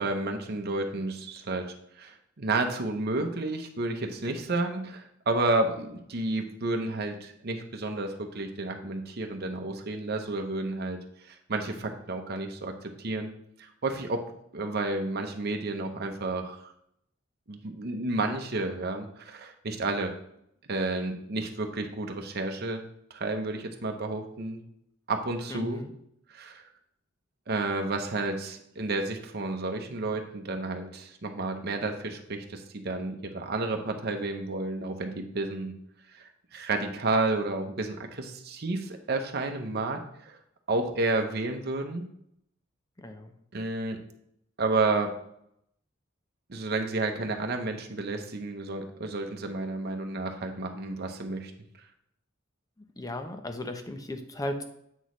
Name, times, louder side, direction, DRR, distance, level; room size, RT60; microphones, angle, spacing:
voice 1, 0.0-1.7 2.0-11.0 11.3-13.3 13.6-14.2 14.5-16.7 17.5-20.1 20.7-22.8 23.1-24.6 25.1-25.8 26.3-26.6 27.5-35.8 36.1-40.4 40.7-42.1 43.5-44.0 44.6-45.1 46.5-51.5, right 2 dB, 55° right, 4 dB, 0.8 m, -31 dB
voice 2, 25.5-25.9 43.0-43.3 53.0-54.6, left 1 dB, 20° left, 7 dB, 0.6 m, -36 dB
8.1 x 6.1 x 3.1 m, 0.73 s
head